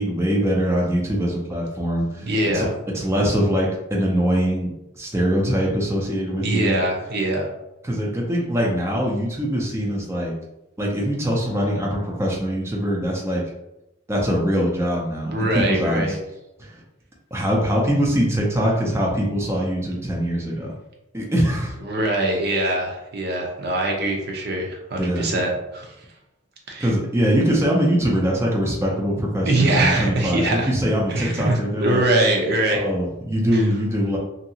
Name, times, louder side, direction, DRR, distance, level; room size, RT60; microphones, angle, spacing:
voice 1, 0.0-2.7 2.9-6.7 7.9-10.3 10.8-13.4 14.1-16.2 16.6-16.8 17.3-20.7 21.1-21.8 25.0-25.3 26.8-32.0 32.7-34.2, equal, 15° right, -3 dB, 0.5 m, -23 dB
voice 2, 2.2-2.7 6.4-7.5 15.2-16.2 21.8-26.0 26.7-26.9 29.5-30.7 31.1-32.9 33.5-33.7, right 1 dB, 60° right, 0 dB, 0.6 m, -23 dB
2.9 x 2.6 x 2.7 m, 0.89 s
head